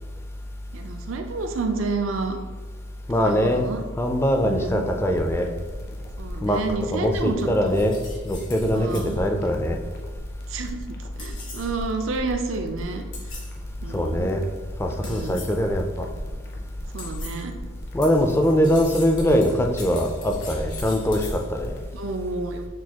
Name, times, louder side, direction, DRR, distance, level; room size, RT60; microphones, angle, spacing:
voice 1, 0.7-2.4 3.2-3.8 4.4-4.9 6.2-7.8 8.7-9.2 10.5-10.9 11.2-13.0 13.8-14.3 15.0-15.4 16.9-17.5 21.9-22.7, right 3 dB, 90° right, 5 dB, 0.5 m, -30 dB
voice 2, 3.1-3.7 4.0-5.5 6.4-6.6 6.9-8.0 8.2-9.8 13.9-14.4 14.8-16.1 17.9-21.8, equal, 15° left, 3 dB, 0.3 m, -22 dB
sound 1, 5.2-21.9, equal, 55° left, 0.6 m, -39 dB
sound 2, 7.7-9.2 11.2-11.8 13.1-13.6 15.0-15.7 17.0-17.5 18.0-21.5, left 4 dB, 70° left, 1.5 m, -42 dB
6.1 x 2.3 x 2.8 m, 1.3 s
head